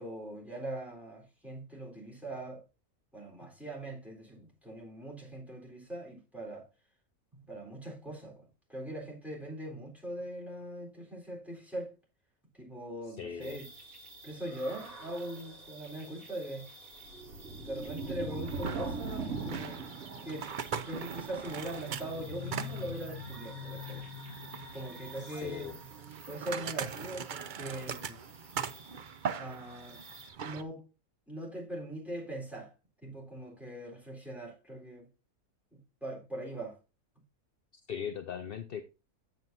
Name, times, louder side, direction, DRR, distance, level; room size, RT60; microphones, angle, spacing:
voice 1, 0.0-2.6 3.1-6.7 7.4-11.9 12.5-13.7 14.2-16.7 17.5-19.8 20.2-24.0 24.7-25.7 26.3-28.2 29.4-30.0 30.4-30.8 31.3-32.7 33.0-35.1 35.7-36.8, right 1 dB, ahead, 3.6 m, -41 dB
voice 2, 13.1-13.6 25.2-25.8 37.9-38.8, left 8 dB, 55° left, 0.6 m, -39 dB
sound 1, 13.4-30.3, right 1 dB, 60° right, 2.4 m, -44 dB
sound 2, 18.4-30.6, right 7 dB, 90° right, 0.4 m, -41 dB
9.1 x 7.9 x 2.6 m
omnidirectional pair, 1.6 m